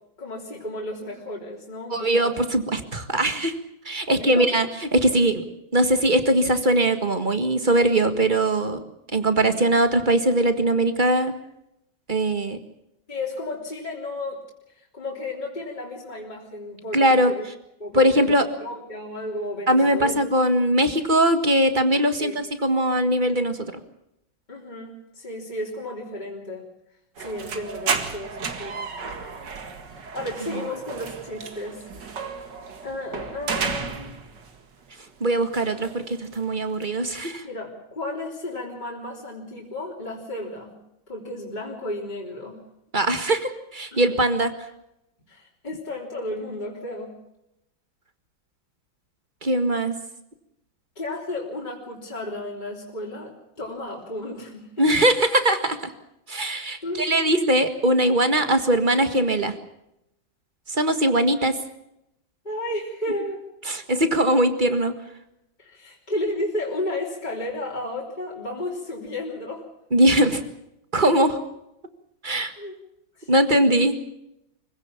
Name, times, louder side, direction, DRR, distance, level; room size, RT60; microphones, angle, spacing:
voice 1, 0.2-2.4 4.1-4.6 13.1-14.4 14.8-17.4 17.8-20.2 22.2-22.4 24.5-26.7 27.2-28.8 30.0-32.1 32.8-34.2 37.4-40.8 41.1-42.6 43.2-43.3 43.9-44.0 45.3-47.1 51.0-54.9 56.8-57.2 62.4-63.4 65.6-69.7 72.6-72.8 73.2-73.3, left 1 dB, 20° left, -3 dB, 3.6 m, -33 dB
voice 2, 1.9-3.5 3.9-4.7 4.9-5.4 5.7-8.8 9.1-11.3 12.1-12.6 16.9-17.3 17.9-18.4 19.7-23.7 35.2-37.4 42.9-44.5 49.4-49.9 54.8-55.9 56.3-59.5 60.7-61.6 63.7-64.9 69.9-70.4 70.9-71.4 72.2-72.5 73.3-73.9, right 1 dB, 25° right, 9 dB, 1.7 m, -21 dB
sound 1, 27.2-34.6 34.9-36.9, right 5 dB, 60° right, 2.5 m, -33 dB
24.5 x 16.5 x 7.2 m, 0.84 s
omnidirectional pair, 2.1 m